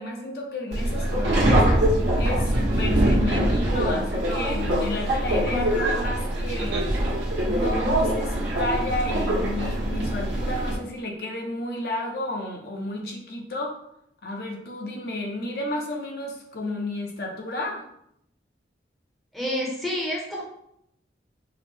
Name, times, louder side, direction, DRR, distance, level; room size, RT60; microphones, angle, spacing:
voice 1, 0.0-1.7 2.2-6.8 7.4-13.8 14.2-17.8, left 1 dB, 55° left, 0 dB, 0.6 m, -32 dB
Subway metro underground, 0.7-10.7, right 1 dB, 85° right, 1.0 m, -23 dB
voice 2, 19.3-20.4, left 1 dB, ahead, -3 dB, 0.6 m, -28 dB
4.8 x 2.1 x 3.3 m, 0.75 s
head